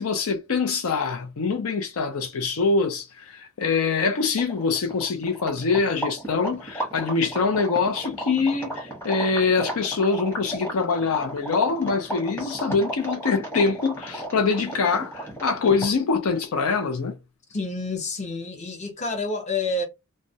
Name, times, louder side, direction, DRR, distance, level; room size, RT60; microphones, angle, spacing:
voice 1, 0.0-17.2, left 4 dB, 75° left, 0.5 m, -24 dB
sound 1, 4.0-4.1 4.3-16.1, right 1 dB, 10° left, 0.9 m, -34 dB
voice 2, 17.5-19.8, left 3 dB, 30° left, 0.7 m, -28 dB
2.3 x 2.0 x 2.6 m
head